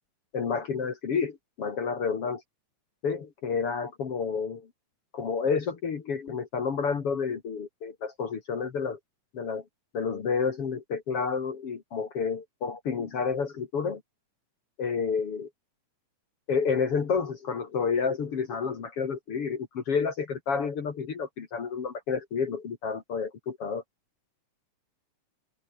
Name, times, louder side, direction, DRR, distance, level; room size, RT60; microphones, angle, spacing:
voice 1, 0.3-2.4 3.0-4.7 5.1-9.0 9.3-9.6 9.9-14.0 14.8-15.5 16.5-23.8, left 5 dB, 50° left, 2.8 m, -30 dB
omnidirectional pair, 3.7 m